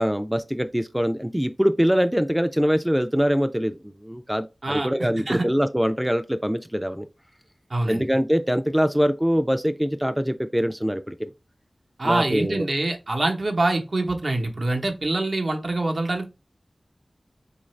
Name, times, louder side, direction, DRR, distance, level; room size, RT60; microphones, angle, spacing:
voice 1, 0.0-7.1 7.9-11.3 12.0-12.7, equal, 5° right, 0.3 m, -23 dB
voice 2, 7.7-8.0 12.0-16.3, right 2 dB, 65° right, 0.8 m, -25 dB
3.9 x 2.5 x 3.1 m
cardioid pair, 45°, 0 cm